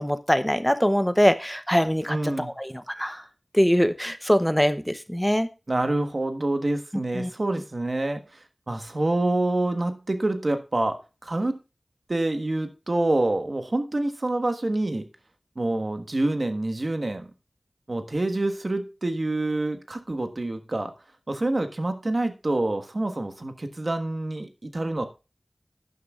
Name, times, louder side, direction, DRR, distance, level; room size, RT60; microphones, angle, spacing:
voice 1, 0.0-3.2 3.5-5.5 7.1-7.3, equal, 5° left, 11 dB, 0.7 m, -23 dB
voice 2, 2.1-2.5 5.7-11.6 12.1-15.1 15.5-17.3 17.9-20.9 21.3-25.1, right 2 dB, 60° right, 7 dB, 1.3 m, -27 dB
11.5 x 9.5 x 2.4 m, 0.29 s
wide cardioid pair, 45°, 0 cm